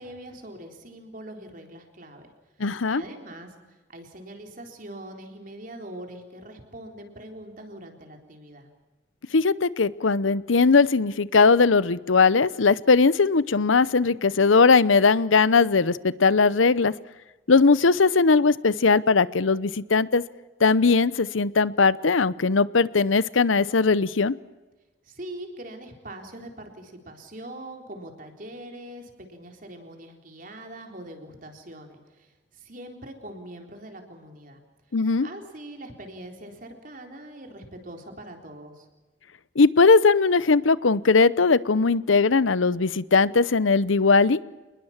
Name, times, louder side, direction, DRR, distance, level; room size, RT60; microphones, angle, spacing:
voice 1, 0.0-2.3 2.6-8.7 25.0-34.6 35.2-38.9, right 1 dB, 45° right, 3 dB, 3.9 m, -42 dB
voice 2, 2.6-3.0 9.3-16.9 17.5-20.2 20.6-24.4 34.9-35.3 39.6-44.4, left 4 dB, 90° left, 18 dB, 0.8 m, -19 dB
28.0 x 20.5 x 7.3 m, 1.2 s
head